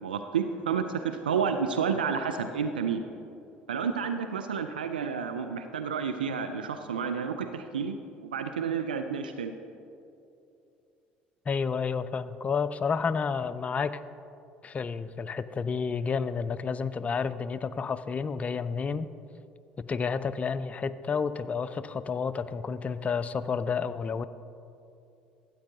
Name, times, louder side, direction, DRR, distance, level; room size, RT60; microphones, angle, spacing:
voice 1, 0.0-3.0 3.7-8.0 8.2-9.5, right 6 dB, 85° right, 7 dB, 0.3 m, -30 dB
voice 2, 11.5-14.0 14.6-19.1 19.8-24.2, left 5 dB, 30° left, 14 dB, 0.3 m, -30 dB
13.0 x 8.3 x 2.8 m, 2.7 s
figure-of-eight pair, 60°, 5 cm